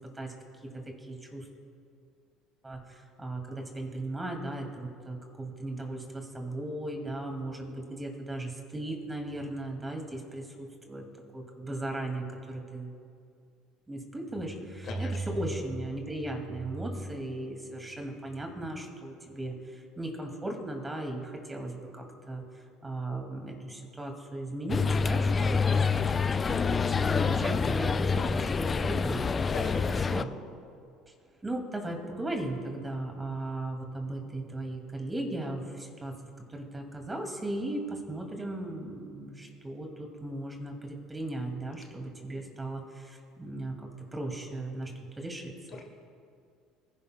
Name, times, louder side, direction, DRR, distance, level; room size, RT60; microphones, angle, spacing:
voice 1, 0.6-1.5 2.6-11.0 11.3-13.0 13.9-22.4 22.8-29.2 29.8-30.3 31.4-36.2 36.5-44.9 45.2-45.8, right 1 dB, 15° right, 2 dB, 2.2 m, -37 dB
sound 1, 24.7-30.2, left 5 dB, 30° left, 0.3 m, -27 dB
voice 2, 29.4-30.1, left 4 dB, 60° left, 0 dB, 2.1 m, -37 dB
24.5 x 11.0 x 2.2 m, 2.3 s
hypercardioid pair, 80°, 0 cm